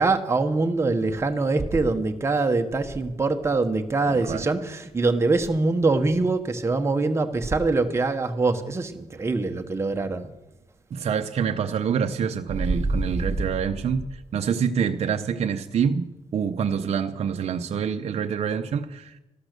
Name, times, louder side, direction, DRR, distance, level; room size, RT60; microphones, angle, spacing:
voice 1, 0.0-10.3 13.1-13.2, right 3 dB, 20° right, 5 dB, 1.2 m, -24 dB
voice 2, 4.1-4.5 10.9-19.2, right 7 dB, 55° right, 6 dB, 0.8 m, -26 dB
13.5 x 12.5 x 6.7 m, 0.97 s
cardioid pair, 130°, 13 cm